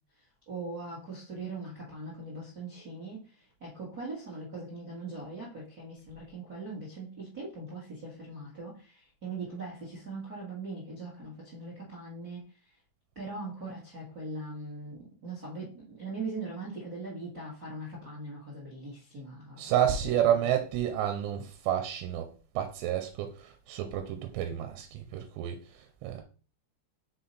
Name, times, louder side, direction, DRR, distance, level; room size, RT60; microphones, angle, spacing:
voice 1, 0.5-12.4 13.1-19.7 20.2-20.5, right 3 dB, 55° right, 1.0 m, -41 dB
voice 2, 19.6-22.3 22.5-26.2, right 10 dB, 85° right, 2.9 m, -30 dB
6.1 x 3.8 x 4.1 m
omnidirectional pair, 5.0 m